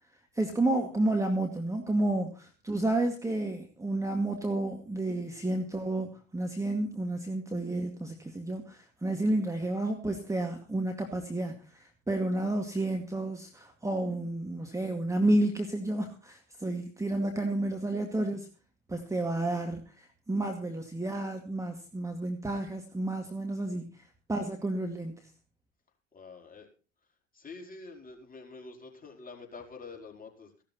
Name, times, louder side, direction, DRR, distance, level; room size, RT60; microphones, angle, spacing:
voice 1, 0.4-18.5 18.9-23.9 24.3-25.3, right 1 dB, 10° right, 3 dB, 2.2 m, -31 dB
voice 2, 26.1-26.7 27.3-30.6, left 4 dB, 20° left, 1 dB, 4.9 m, -47 dB
16.5 x 12.5 x 4.3 m, 0.36 s
figure-of-eight pair, 65°, 40 cm